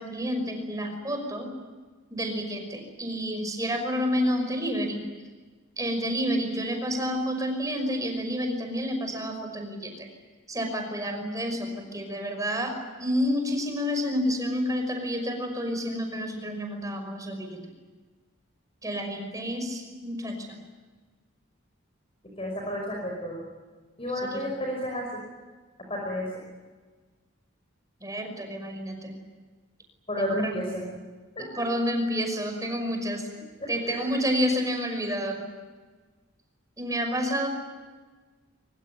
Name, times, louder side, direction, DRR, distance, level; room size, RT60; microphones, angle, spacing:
voice 1, 0.0-1.5 2.1-5.1 5.8-10.1 10.5-17.6 18.8-20.6 24.3-24.5 28.0-29.1 30.2-30.6 31.6-33.3 33.7-35.4 36.8-37.5, equal, 15° right, 4 dB, 5.6 m, -29 dB
voice 2, 22.4-23.4 24.0-25.1 25.9-26.3 30.1-30.9 31.4-31.5 33.6-34.1, left 1 dB, 30° left, 0 dB, 5.5 m, -31 dB
24.5 x 23.5 x 9.3 m, 1.4 s
head